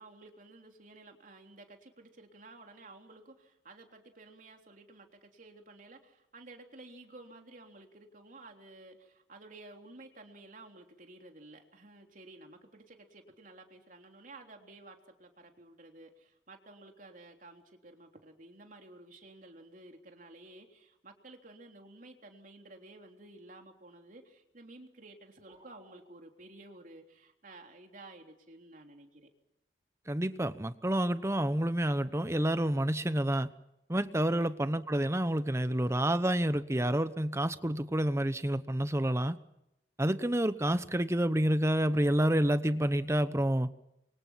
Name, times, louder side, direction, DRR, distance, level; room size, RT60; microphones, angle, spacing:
voice 1, 0.0-29.3 34.3-34.5, right 2 dB, 45° right, 3 dB, 3.5 m, -53 dB
sound 1, 25.5-26.0, right 3 dB, 30° right, 5.0 m, -60 dB
voice 2, 30.1-33.5 33.9-39.4 40.0-43.7, right 1 dB, 15° right, 13 dB, 0.9 m, -29 dB
28.0 x 24.5 x 5.9 m, 0.84 s
head